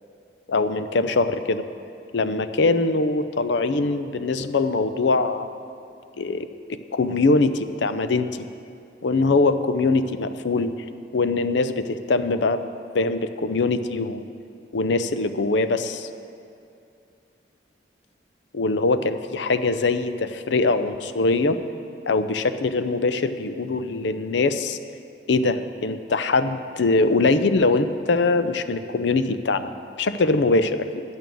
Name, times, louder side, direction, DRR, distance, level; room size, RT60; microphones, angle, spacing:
voice 1, 0.5-1.6 2.1-5.5 6.2-8.4 9.0-10.7 11.1-12.6 12.9-14.2 14.7-16.1 18.5-21.6 22.1-24.8 25.3-29.7 30.0-31.0, left 3 dB, 70° left, 11 dB, 0.5 m, -22 dB
10.5 x 9.2 x 6.3 m, 2.5 s
head